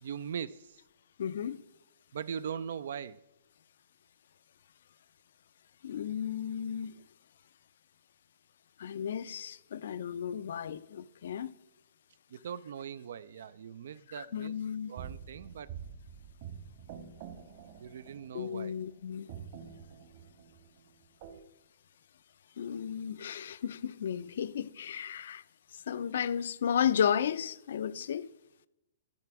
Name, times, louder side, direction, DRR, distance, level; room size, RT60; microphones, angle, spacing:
voice 1, 0.0-0.8 2.1-3.2 12.3-14.5 14.9-15.8 17.8-18.8, right 8 dB, 65° right, 0.3 m, -40 dB
voice 2, 1.2-1.6 5.8-7.0 8.8-11.5 14.1-14.9 18.3-19.3 22.6-25.4 25.9-28.3, left 8 dB, 60° left, 0.4 m, -33 dB
sound 1, 15.0-18.9 19.3-21.4, right 8 dB, 40° right, 1.3 m, -47 dB
13.5 x 5.1 x 4.7 m
hypercardioid pair, 160°, 0 cm